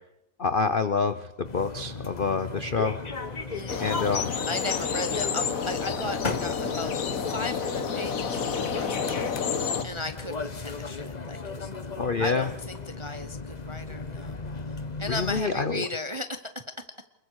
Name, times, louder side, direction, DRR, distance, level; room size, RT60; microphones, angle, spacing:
voice 1, 0.4-3.0 3.8-4.4 12.0-12.5 15.1-15.9, left 4 dB, 70° left, 11 dB, 0.5 m, -27 dB
sound 1, 1.4-15.4, left 4 dB, 25° left, 1.0 m, -36 dB
voice 2, 3.5-4.0 4.4-9.3 9.8-11.7 12.2-14.4 15.0-16.8, left 2 dB, 30° right, 8 dB, 0.6 m, -36 dB
sound 2, 3.7-9.8, left 6 dB, 45° left, 1.5 m, -30 dB
28.0 x 21.5 x 4.8 m, 0.86 s
omnidirectional pair, 2.2 m